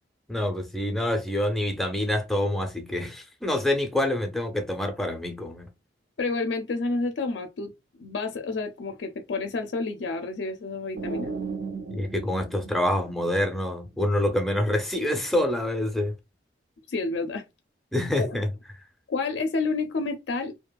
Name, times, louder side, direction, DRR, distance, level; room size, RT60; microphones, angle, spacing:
voice 1, 0.3-5.7 11.9-16.1 17.9-18.5, left 1 dB, ahead, 0.4 m, -26 dB
voice 2, 6.2-7.7 8.0-11.3 16.9-17.4 18.2-18.4 19.1-20.6, left 3 dB, 75° left, 0.4 m, -29 dB
sound 1, 11.0-13.8, right 4 dB, 80° right, 0.5 m, -36 dB
2.7 x 2.4 x 2.2 m
head